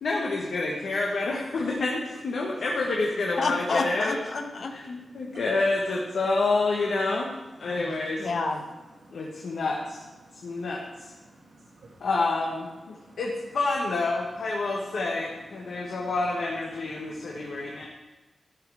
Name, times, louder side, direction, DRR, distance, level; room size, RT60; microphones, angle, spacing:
voice 1, 0.0-4.2 4.7-7.3 7.6-8.3 9.1-10.0 10.4-11.1 12.0-17.9, left 3 dB, 90° left, -2 dB, 1.3 m, -28 dB
voice 2, 3.4-4.7 8.2-8.6, left 3 dB, 70° left, 4 dB, 1.1 m, -28 dB
voice 3, 11.3-12.1 12.9-13.2 15.7-16.1 16.9-17.9, right 2 dB, 85° right, -5 dB, 1.6 m, -53 dB
12.5 x 6.1 x 4.8 m, 1.1 s
wide cardioid pair, 115°, 0 cm